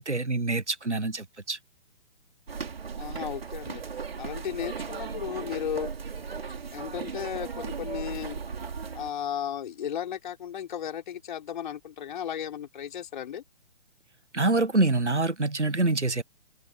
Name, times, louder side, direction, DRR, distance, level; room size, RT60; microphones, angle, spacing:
voice 1, 0.0-1.6 14.3-16.2, right 2 dB, 90° right, 1.3 m, -26 dB
sound 1, 2.5-9.1, right 5 dB, 60° right, 4.1 m, -36 dB
voice 2, 3.0-3.8 4.2-5.9 6.7-8.4 8.9-13.4, left 9 dB, 45° left, 3.9 m, -35 dB
figure-of-eight pair, 130°, 34 cm